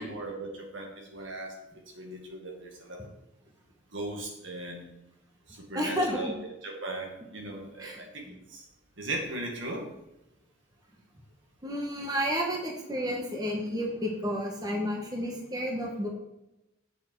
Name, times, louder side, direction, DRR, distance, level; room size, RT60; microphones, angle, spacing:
voice 1, 0.0-1.5 2.0-3.1 3.9-4.9 5.5-6.3 6.6-8.6 9.0-9.8, right 2 dB, 65° right, 0 dB, 2.1 m, -38 dB
voice 2, 5.7-6.4 7.8-8.0 11.6-16.1, equal, 20° right, 0 dB, 1.3 m, -31 dB
8.4 x 6.6 x 4.7 m, 0.92 s
head